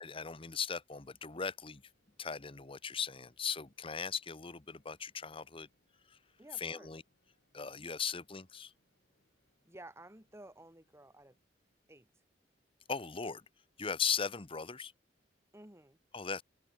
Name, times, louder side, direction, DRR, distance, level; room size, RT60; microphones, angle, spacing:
voice 1, 0.0-1.8 2.2-5.7 6.1-6.2 6.6-7.0 7.5-8.7 12.9-13.4 13.8-14.9 16.1-16.4, left 6 dB, 30° left, 1.0 m, -38 dB
Organ, 1.3-12.0, left 1 dB, 60° left, 7.5 m, -80 dB
voice 2, 6.4-6.9 9.6-11.4 11.9-12.1 15.5-16.0, right 1 dB, 15° right, 2.3 m, -53 dB
open air
head